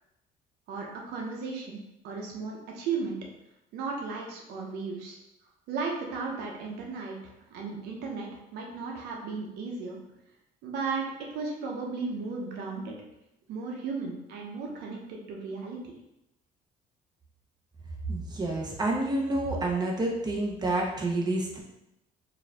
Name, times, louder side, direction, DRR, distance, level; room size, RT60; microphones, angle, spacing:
voice 1, 0.7-3.2 3.7-5.2 5.7-7.2 7.5-10.0 10.6-13.0 13.5-15.9, right 4 dB, 85° right, 0 dB, 0.9 m, -35 dB
voice 2, 18.1-21.6, right 2 dB, 25° right, -2 dB, 1.0 m, -29 dB
4.6 x 2.7 x 3.5 m, 0.87 s
cardioid pair, 110°, 17 cm